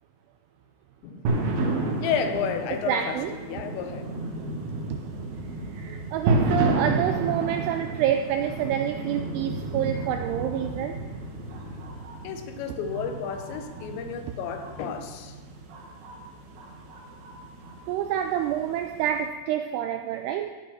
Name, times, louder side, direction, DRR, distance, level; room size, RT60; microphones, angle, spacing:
sound 1, 1.3-19.2, right 2 dB, 65° right, 3.0 m, -31 dB
voice 1, 2.0-4.0 12.2-15.4, left 7 dB, 80° left, 7 dB, 3.1 m, -31 dB
voice 2, 2.9-3.4 5.4-11.0 17.9-20.5, right 10 dB, 85° right, 7 dB, 2.4 m, -27 dB
16.0 x 5.5 x 6.1 m, 1.3 s
omnidirectional pair, 5.2 m